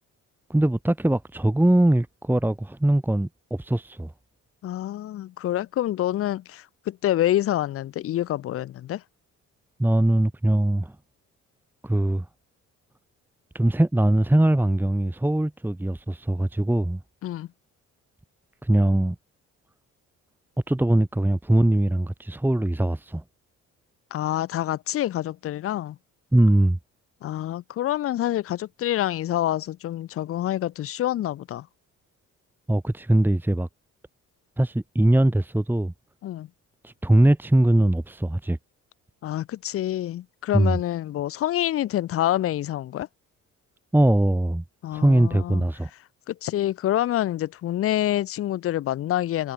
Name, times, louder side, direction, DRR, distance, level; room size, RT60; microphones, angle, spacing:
voice 1, 0.5-4.1 9.8-10.9 11.8-12.2 13.5-17.0 18.6-19.1 20.7-23.2 26.3-26.8 32.7-33.7 34.6-35.9 36.8-38.6 40.5-40.8 43.9-44.6 44.9-45.9, right 1 dB, 5° right, 1.5 m, -21 dB
voice 2, 4.6-9.0 17.2-17.5 24.1-26.0 27.2-31.7 36.2-36.5 39.2-43.1 44.8-45.6 46.3-49.5, left 13 dB, 50° left, 0.5 m, -27 dB
cardioid pair, 90°, 30 cm